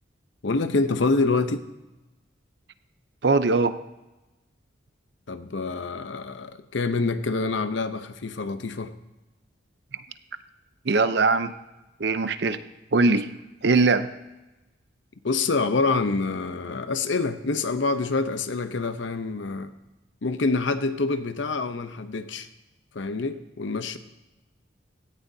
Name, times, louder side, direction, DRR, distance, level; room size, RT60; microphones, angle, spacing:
voice 1, 0.4-1.6 5.3-8.9 15.2-19.7 20.2-22.5 22.9-24.0, left 3 dB, 75° left, 10 dB, 0.7 m, -26 dB
voice 2, 3.2-3.8 10.8-11.5 12.0-12.6 12.9-13.3 13.6-14.1, right 3 dB, 60° right, 11 dB, 0.6 m, -21 dB
17.5 x 13.5 x 2.7 m, 1.0 s
head